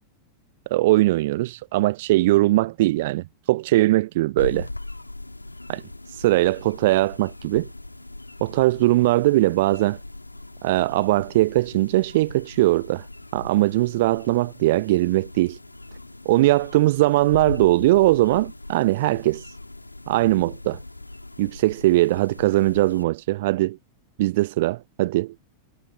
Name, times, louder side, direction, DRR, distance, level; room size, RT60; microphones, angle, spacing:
voice 1, 0.7-4.7 5.7-5.8 6.2-7.7 8.4-10.0 10.6-13.0 13.3-15.6 16.3-19.4 20.1-20.8 21.4-23.8 24.2-25.3, right 18 dB, 55° right, 0.5 m, -20 dB
sound 1, 4.4-23.0, left 2 dB, 85° left, 3.3 m, -39 dB
figure-of-eight pair, 90°, 0 cm